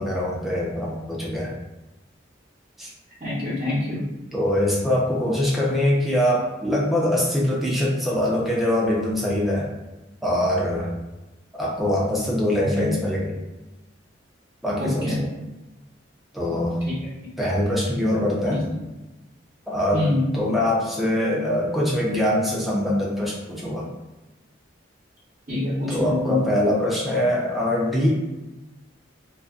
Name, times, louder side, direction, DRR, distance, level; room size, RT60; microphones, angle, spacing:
voice 1, 0.0-1.5 2.8-2.9 4.3-9.7 10.2-10.9 11.5-13.3 14.6-15.3 16.3-16.8 17.4-18.6 19.7-23.9 25.9-28.1, left 1 dB, ahead, -5 dB, 0.5 m, -23 dB
voice 2, 3.2-4.0 12.7-12.9 14.8-15.2 16.8-16.9 18.5-18.6 19.9-20.2 25.5-26.4, left 1 dB, 40° right, -12 dB, 0.9 m, -25 dB
2.4 x 2.1 x 2.4 m, 1.1 s
head